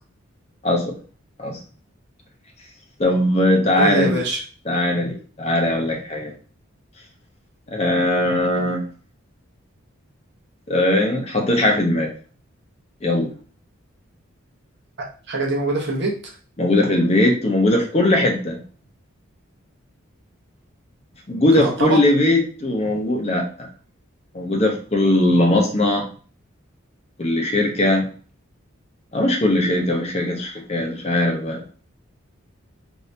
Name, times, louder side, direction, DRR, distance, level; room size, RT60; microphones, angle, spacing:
voice 1, 0.6-1.0 1.4-1.6 3.0-4.2 4.7-6.3 7.7-8.8 10.7-12.1 13.0-13.3 16.6-18.6 21.3-23.7 24.3-26.1 27.2-28.1 29.1-31.6, left 1 dB, 30° left, 1 dB, 0.7 m, -19 dB
voice 2, 3.8-4.4 15.0-16.1 21.6-22.0, right 2 dB, 55° right, -1 dB, 0.9 m, -24 dB
2.8 x 2.7 x 3.2 m, 0.39 s
head